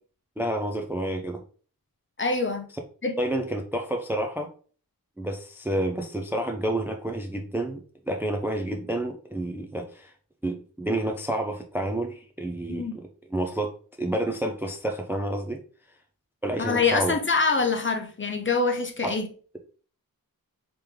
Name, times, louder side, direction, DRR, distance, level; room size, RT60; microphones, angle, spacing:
voice 1, 0.4-1.4 3.2-4.5 5.2-7.8 8.1-10.1 10.4-15.6 16.4-17.1, right 1 dB, 5° right, 0.4 m, -29 dB
voice 2, 2.2-2.6 3.0-3.2 12.7-13.0 16.6-19.3, left 4 dB, 35° left, 0.7 m, -25 dB
3.3 x 3.0 x 3.4 m
wide cardioid pair, 95°, 36 cm